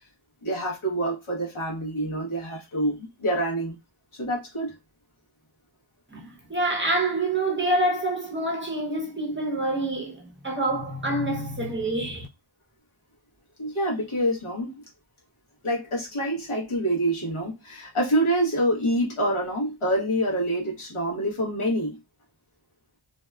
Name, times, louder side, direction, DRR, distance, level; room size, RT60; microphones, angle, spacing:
voice 1, 0.4-3.7 4.1-4.7 13.6-14.7 15.6-22.0, right 1 dB, 80° left, 1.1 m, -26 dB
voice 2, 6.1-12.3, right 1 dB, 25° right, 0.7 m, -27 dB
2.7 x 2.2 x 2.2 m
wide cardioid pair, 50°, 49 cm